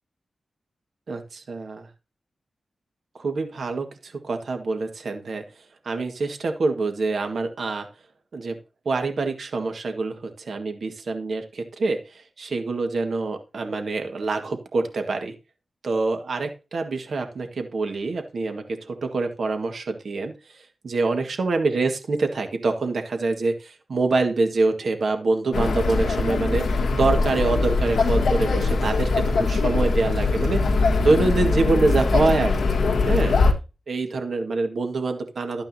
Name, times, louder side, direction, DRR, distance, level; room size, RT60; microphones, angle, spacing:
voice 1, 1.1-1.9 3.2-5.4 5.8-7.9 8.3-8.6 8.8-15.3 15.8-26.6 26.9-33.4 33.9-35.6, right 3 dB, 70° right, 5 dB, 1.6 m, -25 dB
sound 1, 25.5-33.5, left 3 dB, 90° left, 1.5 m, -22 dB
12.0 x 8.8 x 2.8 m, 0.30 s
cardioid pair, 75°, 0 cm